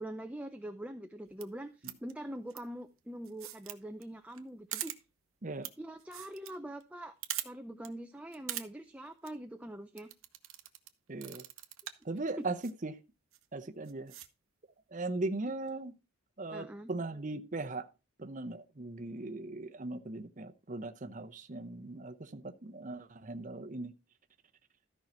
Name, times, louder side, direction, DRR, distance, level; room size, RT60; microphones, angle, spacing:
voice 1, 0.0-4.9 5.8-7.1 7.4-10.1 16.5-16.9, right 1 dB, 5° right, 0.5 m, -44 dB
sound 1, 1.3-1.4 1.8-2.1 2.5-2.6 3.2-3.8 4.0-4.1 4.3-4.4 4.7-5.0 5.6-5.7 6.0-6.5 6.8-6.9 7.2-7.5 7.8-7.9 8.3-8.7 9.1-9.3 10.0-10.9 11.2-12.0 12.6-12.7 13.3-13.4 13.9-14.3, right 13 dB, 85° right, 1.0 m, -41 dB
voice 2, 11.1-11.4 12.0-13.0 13.5-14.1 14.9-15.9 16.4-17.9 18.2-23.9, right 2 dB, 40° right, 0.8 m, -39 dB
13.5 x 5.5 x 4.5 m
head